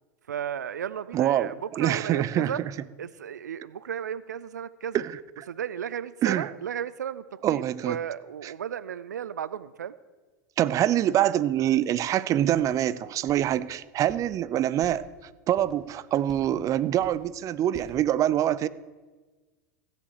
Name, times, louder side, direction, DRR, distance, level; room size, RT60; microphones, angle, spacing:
voice 1, 0.3-2.6 3.0-5.0 5.5-9.9, right 9 dB, 85° right, 18 dB, 0.4 m, -34 dB
voice 2, 1.1-2.5 4.9-5.1 6.2-6.5 7.4-8.0 10.6-15.0 15.5-18.7, right 12 dB, 35° right, 17 dB, 0.5 m, -25 dB
sound 1, 12.5-12.7 13.3-13.5 14.1-14.3 14.8-15.1 15.5-15.8 16.3-16.6 17.0-17.2 17.7-18.0, left 1 dB, 5° left, 2.8 m, -48 dB
15.5 x 7.3 x 6.6 m, 1.3 s
hypercardioid pair, 90°, 9 cm